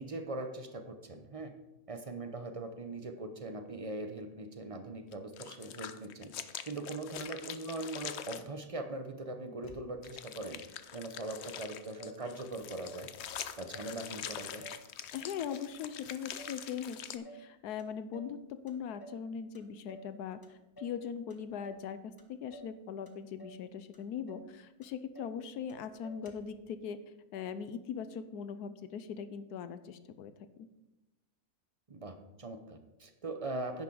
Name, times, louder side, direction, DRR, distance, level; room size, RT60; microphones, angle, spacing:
voice 1, 0.0-1.5 1.9-6.3 6.6-10.6 10.9-13.1 13.6-14.7 31.9-33.8, right 2 dB, 35° right, 7 dB, 0.6 m, -41 dB
sound 1, 5.1-8.4 10.0-17.2, left 9 dB, 65° left, 0.7 m, -44 dB
Motor vehicle (road), 9.6-10.3 10.8-10.9 11.2-12.2 12.5-13.1 13.4-14.0 14.3-15.7 16.0-16.6 16.9-17.5 17.8-18.4 18.7-19.3 19.5-20.1 20.4-21.0 21.3-21.9 22.2-22.8 23.1-23.6 23.9-24.0 24.3-24.5 24.8-25.4 25.7-25.8 26.0-26.6, right 2 dB, 20° left, 0.8 m, -52 dB
voice 2, 15.1-27.0 27.3-30.3, left 7 dB, 90° left, 12 dB, 1.3 m, -40 dB
10.5 x 9.4 x 3.9 m, 1.0 s
omnidirectional pair, 1.6 m